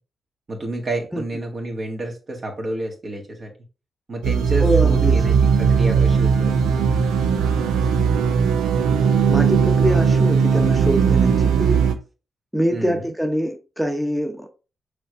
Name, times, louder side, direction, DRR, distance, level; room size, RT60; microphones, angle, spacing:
voice 1, 0.5-3.5 4.1-6.9 12.7-13.0, right 1 dB, 50° right, 1.7 m, -29 dB
sound 1, 4.2-11.9, right 6 dB, 85° right, 0.5 m, -18 dB
voice 2, 4.6-5.2 9.3-11.8 12.5-14.5, equal, 5° right, 0.8 m, -24 dB
5.7 x 3.4 x 2.6 m
supercardioid pair, 45°, 0 cm